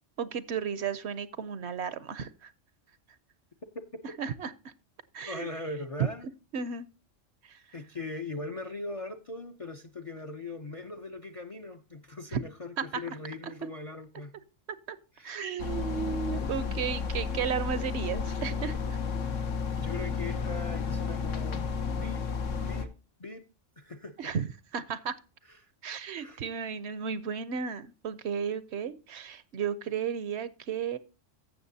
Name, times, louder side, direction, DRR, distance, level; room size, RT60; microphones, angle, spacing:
voice 1, 0.2-2.5 4.2-4.7 5.1-5.5 6.5-6.9 7.4-7.6 12.3-12.4 12.8-13.0 14.7-15.0 15.2-19.0 24.2-24.5 24.7-25.2 25.8-31.0, right 7 dB, 65° right, 0.9 m, -34 dB
voice 2, 5.3-6.3 7.7-14.3 15.2-15.3 19.8-22.2 22.6-22.9 23.2-23.4 23.8-24.3 25.4-25.7 26.2-26.4, left 3 dB, 40° left, 0.5 m, -40 dB
sound 1, 15.6-22.9, left 5 dB, 80° left, 1.3 m, -32 dB
15.0 x 6.4 x 2.7 m
omnidirectional pair, 1.3 m